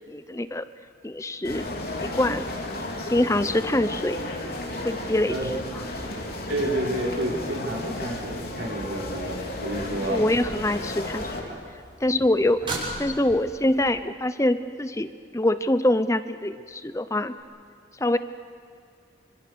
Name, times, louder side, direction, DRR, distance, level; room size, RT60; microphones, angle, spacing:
voice 1, 0.1-0.7 1.0-1.6 2.0-2.5 3.1-4.2 4.8-5.4 10.1-11.5 12.0-12.6 13.0-17.3 18.0-18.2, left 1 dB, 15° left, 12 dB, 0.7 m, -24 dB
sound 1, 1.4-11.4, left 1 dB, 50° left, 3.7 m, -33 dB
voice 2, 6.5-10.2, right 1 dB, 80° right, -1 dB, 5.3 m, -29 dB
sound 2, 10.8-13.9 17.4-17.5, right 2 dB, 25° right, 6.4 m, -37 dB
28.0 x 25.5 x 6.9 m, 2.3 s
head